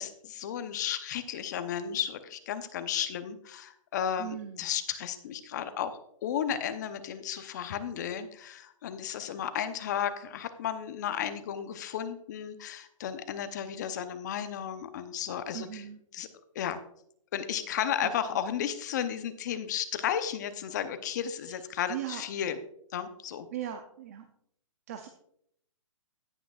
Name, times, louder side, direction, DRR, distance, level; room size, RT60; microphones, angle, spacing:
voice 1, 0.0-15.8 16.1-16.3 16.5-16.8 17.3-22.6 22.9-23.5, left 9 dB, 35° left, 10 dB, 0.7 m, -34 dB
voice 2, 4.2-4.7 15.5-16.0 18.0-18.1 21.9-22.2 23.5-24.3 24.9-25.1, right 11 dB, 30° right, 6 dB, 0.6 m, -38 dB
17.0 x 6.0 x 2.4 m, 0.70 s
hypercardioid pair, 165°, 17 cm